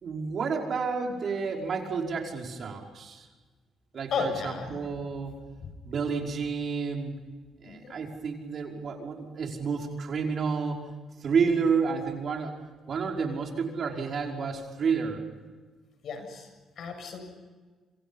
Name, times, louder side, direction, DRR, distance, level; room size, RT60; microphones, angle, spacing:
voice 1, 0.0-3.3 3.9-5.3 5.8-7.1 7.6-10.8 11.2-12.6 12.9-15.2, right 5 dB, 55° right, 1 dB, 5.3 m, -30 dB
voice 2, 4.1-4.8 5.6-5.7 7.7-7.9 16.0-16.5 16.8-17.2, left 5 dB, 65° left, 6 dB, 7.3 m, -33 dB
28.5 x 26.0 x 5.6 m, 1.3 s
cardioid pair, 90°, 0 cm